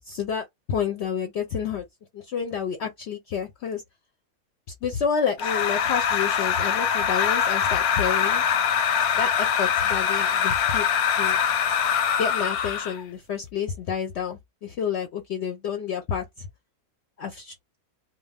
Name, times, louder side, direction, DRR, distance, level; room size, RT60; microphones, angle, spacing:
voice 1, 0.0-1.8 2.1-3.8 4.8-8.4 9.1-10.9 11.2-11.4 12.2-16.5 17.2-17.5, left 7 dB, 60° left, 0.8 m, -29 dB
sound 1, 5.4-13.0, left 7 dB, 90° left, 1.1 m, -23 dB
2.5 x 2.2 x 3.3 m
omnidirectional pair, 1.5 m